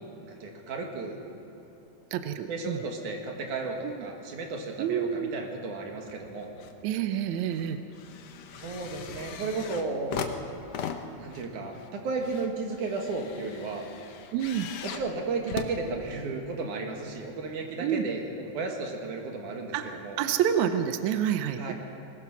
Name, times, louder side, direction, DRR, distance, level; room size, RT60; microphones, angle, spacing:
voice 1, 0.2-1.1 2.5-6.5 8.6-10.1 11.2-13.9 14.8-20.2 21.6-21.7, right 3 dB, 60° right, 2 dB, 3.2 m, -34 dB
voice 2, 2.1-2.8 3.8-4.1 4.8-5.3 6.8-7.8 14.3-14.7 17.8-18.0 19.7-21.7, right 9 dB, 75° right, 8 dB, 1.7 m, -28 dB
sound 1, 6.1-6.8 7.1-16.5 17.3-17.4, left 7 dB, 70° left, 1.6 m, -40 dB
21.0 x 20.0 x 6.1 m, 2.8 s
omnidirectional pair, 4.2 m